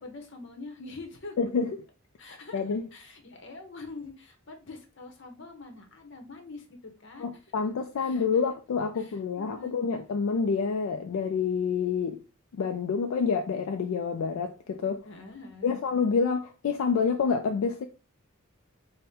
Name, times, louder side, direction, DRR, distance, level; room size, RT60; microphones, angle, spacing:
voice 1, 0.0-1.4 2.2-2.6 2.9-7.4 8.0-8.2 8.9-9.7 15.0-15.7, left 3 dB, 60° left, 0.8 m, -45 dB
voice 2, 1.4-1.7 2.5-2.8 7.2-12.2 12.5-15.0 15.6-17.8, left 5 dB, 80° left, 0.3 m, -28 dB
4.1 x 2.1 x 3.5 m
head